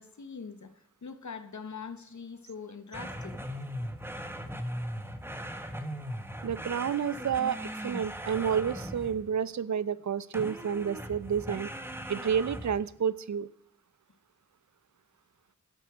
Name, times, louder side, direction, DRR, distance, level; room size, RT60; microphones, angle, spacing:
voice 1, 0.0-3.4, left 5 dB, 65° left, 10 dB, 1.0 m, -43 dB
sound 1, 2.9-9.4 10.3-12.9, equal, 5° right, 1.1 m, -39 dB
voice 2, 6.4-7.6 7.8-11.7 12.1-13.5, right 7 dB, 65° right, 19 dB, 0.5 m, -30 dB
11.5 x 8.3 x 6.0 m, 0.74 s
wide cardioid pair, 75°, 31 cm